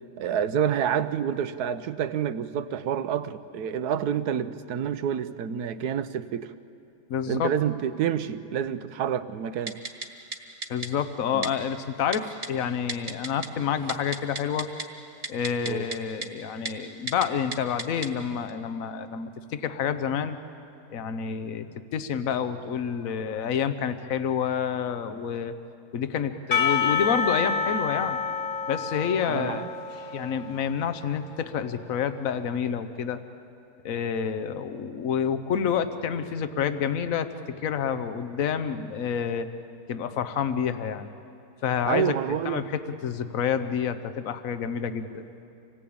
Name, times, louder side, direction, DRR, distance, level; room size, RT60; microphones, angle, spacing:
voice 1, 0.2-6.5 7.3-9.8 11.3-11.5 15.6-15.9 29.3-29.7 41.9-42.6, right 8 dB, 70° right, 13 dB, 1.2 m, -28 dB
voice 2, 7.1-7.5 10.7-14.7 15.3-20.4 20.9-25.5 25.9-28.2 28.7-29.8 30.1-33.2 33.8-39.5 39.9-41.1 41.6-42.2 42.4-45.2, left 7 dB, 55° left, 11 dB, 1.3 m, -28 dB
Typing, 9.7-10.1 10.3-10.4 10.6-10.9 11.4-11.5 12.1-12.5 12.9-13.5 13.8-14.8 15.2-16.3 16.7-16.8 17.1-17.3 17.5-18.1 18.5-18.6, right 3 dB, 35° right, 1.6 m, -33 dB
Percussion / Church bell, 26.5-31.3, left 6 dB, 35° left, 1.5 m, -28 dB
26.5 x 18.5 x 8.7 m, 2.6 s
omnidirectional pair, 1.9 m